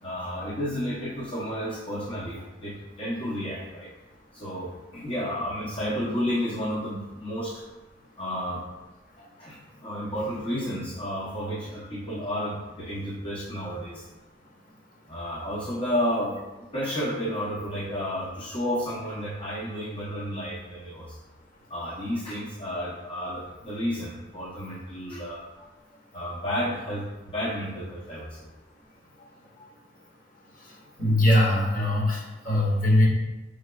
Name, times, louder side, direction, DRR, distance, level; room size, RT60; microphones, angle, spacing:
voice 1, 0.0-3.9 4.3-7.6 8.2-8.6 9.2-14.0 15.1-21.2 21.7-25.7 26.1-28.5 29.2-29.3 29.6-29.7, equal, 30° left, -8 dB, 0.7 m, -32 dB
voice 2, 31.0-33.1, left 1 dB, 45° left, -3 dB, 1.2 m, -21 dB
5.0 x 4.6 x 2.2 m, 1.1 s
head